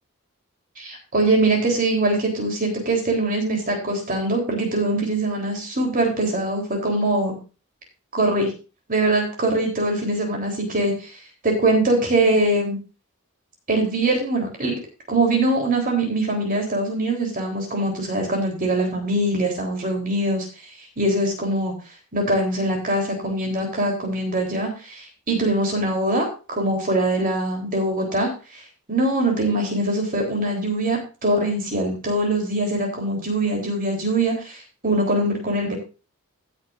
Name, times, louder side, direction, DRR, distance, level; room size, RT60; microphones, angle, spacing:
voice 1, 0.8-7.4 8.1-8.5 8.9-11.2 11.4-12.8 13.7-14.8 15.1-20.5 21.0-21.7 22.1-28.6 28.9-35.7, right 1 dB, 40° right, 1 dB, 3.8 m, -22 dB
17.0 x 7.8 x 2.6 m, 0.33 s
head